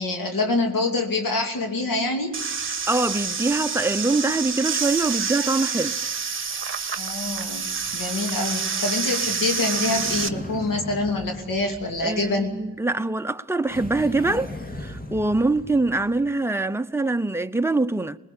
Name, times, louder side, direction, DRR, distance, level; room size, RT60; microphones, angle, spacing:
voice 1, 0.0-2.4 7.0-12.6, left 2 dB, 80° left, 2.8 m, -26 dB
sound 1, 2.3-10.3, right 5 dB, 40° right, 1.2 m, -28 dB
voice 2, 2.9-6.0 12.0-14.5 14.8-18.2, right 2 dB, 10° right, 0.8 m, -24 dB
sound 2, 9.7-12.8 13.7-16.4, left 1 dB, 25° left, 2.5 m, -38 dB
21.0 x 20.5 x 8.4 m
cardioid pair, 75°, 33 cm